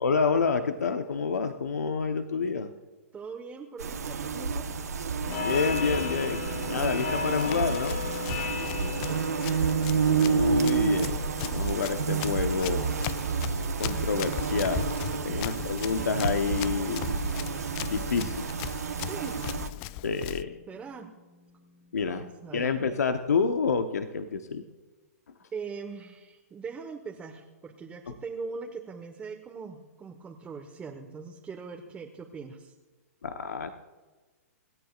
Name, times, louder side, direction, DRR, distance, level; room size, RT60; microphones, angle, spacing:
voice 1, 0.0-2.7 5.4-6.4 6.7-8.0 9.9-13.0 13.8-17.2 17.9-18.6 20.0-20.6 21.9-22.2 22.5-24.6 33.2-33.7, left 5 dB, 85° left, 7 dB, 1.0 m, -28 dB
voice 2, 3.1-4.8 8.5-9.3 15.3-15.5 19.1-19.4 20.7-21.1 22.1-22.7 25.5-32.7, right 5 dB, 15° right, 2 dB, 1.3 m, -41 dB
sound 1, 3.8-19.7, right 5 dB, 90° right, 1.3 m, -30 dB
sound 2, 5.2-22.5, left 5 dB, 60° left, 6.0 m, -39 dB
Run, 7.2-20.4, left 16 dB, 35° left, 0.4 m, -39 dB
27.0 x 13.5 x 2.5 m, 1.3 s
hypercardioid pair, 130°, 8 cm